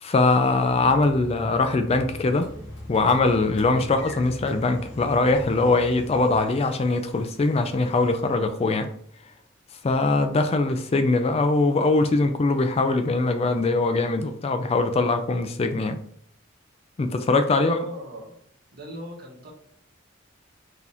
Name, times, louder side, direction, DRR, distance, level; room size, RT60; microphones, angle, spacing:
voice 1, 0.0-2.5 2.9-8.9 9.8-16.0 17.0-17.8, left 3 dB, 30° left, 0.4 m, -22 dB
sound 1, 0.7-6.4, left 1 dB, 5° right, 1.4 m, -40 dB
Train / Sliding door, 1.8-8.4, left 1 dB, 65° left, 1.3 m, -45 dB
voice 2, 17.6-18.4 18.7-19.5, equal, 50° right, 1.5 m, -38 dB
4.0 x 2.8 x 3.6 m
head